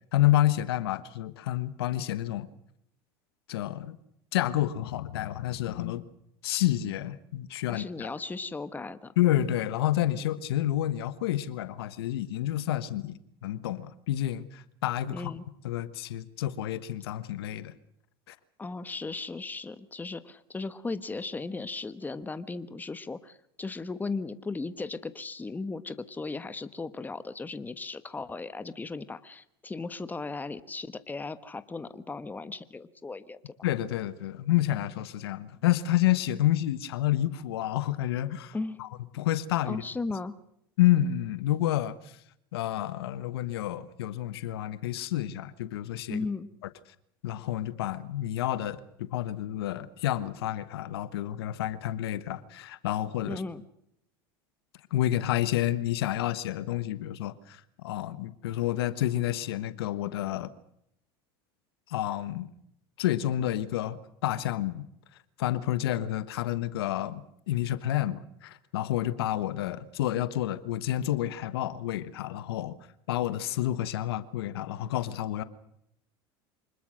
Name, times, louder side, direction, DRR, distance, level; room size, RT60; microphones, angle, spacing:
voice 1, 0.1-2.5 3.5-4.0 4.3-6.0 6.4-8.1 9.2-15.3 15.6-17.7 18.3-18.4 33.6-38.9 39.1-39.8 40.8-42.1 42.5-46.2 47.2-53.4 54.9-60.5 61.9-62.5 63.0-64.8 65.4-67.2 67.5-72.8 73.1-75.4, left 13 dB, 85° left, 1.3 m, -29 dB
voice 2, 7.7-9.1 15.1-15.4 18.6-33.5 38.5-38.8 39.7-40.3 46.1-46.5 53.2-53.6, left 3 dB, 15° left, 1.3 m, -36 dB
25.5 x 20.5 x 6.4 m
supercardioid pair, 100°, 13 cm